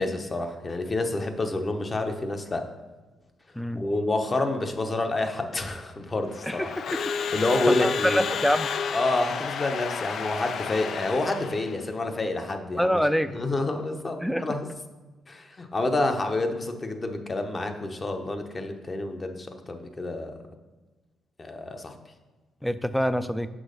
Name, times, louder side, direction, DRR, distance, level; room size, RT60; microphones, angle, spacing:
voice 1, 0.0-2.6 3.8-6.7 7.3-8.2 8.9-13.0 13.3-14.7 15.3-20.3 21.4-21.9, left 2 dB, 30° left, 5 dB, 0.9 m, -28 dB
voice 2, 3.6-3.9 6.4-7.0 7.7-8.7 12.8-13.3 14.2-14.5 22.6-23.5, equal, 5° left, 12 dB, 0.4 m, -25 dB
Crowd / Alarm, 6.3-11.8, left 6 dB, 60° left, 0.4 m, -31 dB
6.3 x 5.8 x 5.2 m, 1.2 s
cardioid pair, 90°, 0 cm